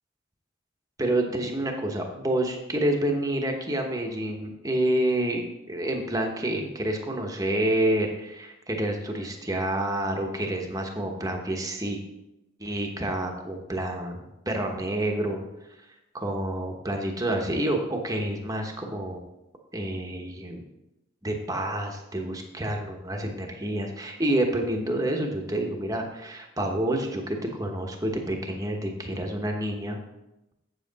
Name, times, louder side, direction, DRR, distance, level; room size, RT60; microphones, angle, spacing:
voice 1, 1.0-12.0 12.6-15.4 16.1-19.2 19.7-20.6 21.2-30.0, right 1 dB, 20° right, 2 dB, 1.0 m, -28 dB
8.2 x 7.5 x 4.0 m, 0.93 s
head